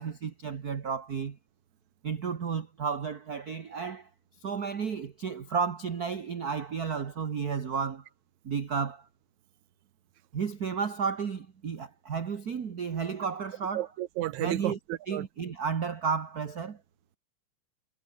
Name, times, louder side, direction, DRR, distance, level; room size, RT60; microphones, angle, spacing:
voice 1, 0.0-1.4 2.0-4.1 4.4-8.1 8.4-9.1 10.3-13.9 14.4-14.8 15.1-16.8, right 6 dB, 45° right, 1.2 m, -32 dB
voice 2, 13.7-15.3, right 15 dB, 75° right, 2.0 m, -32 dB
omnidirectional pair, 3.7 m